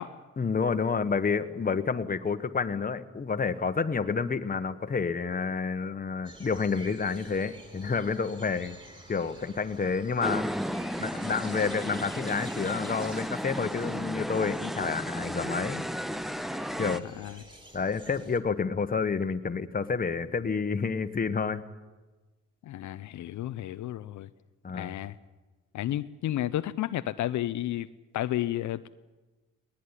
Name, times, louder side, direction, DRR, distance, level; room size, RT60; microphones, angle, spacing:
voice 1, 0.4-8.8 9.1-10.5 11.0-15.8 16.8-17.0 17.7-21.6 24.6-24.9, left 5 dB, 30° left, 10 dB, 1.4 m, -29 dB
sound 1, 6.2-18.4, right 1 dB, 15° right, 3.7 m, -50 dB
sound 2, 10.2-17.0, equal, ahead, 0.7 m, -34 dB
voice 2, 17.0-17.4 22.6-24.3 24.7-25.1 25.7-27.9 28.1-28.9, left 13 dB, 75° left, 11 dB, 0.7 m, -32 dB
20.0 x 19.5 x 10.0 m, 1.2 s
cardioid pair, 90°, 30 cm